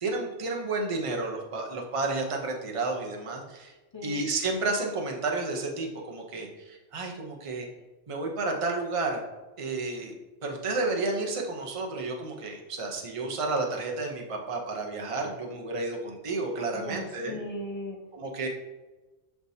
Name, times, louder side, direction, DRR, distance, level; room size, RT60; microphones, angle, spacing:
voice 1, 0.0-3.7 4.0-7.7 8.1-9.2 9.6-10.1 10.4-17.4 18.1-18.5, right 3 dB, 30° right, 1 dB, 0.8 m, -31 dB
voice 2, 16.7-18.0, equal, 25° left, 0 dB, 0.8 m, -37 dB
10.5 x 3.5 x 2.7 m, 1.1 s
omnidirectional pair, 1.3 m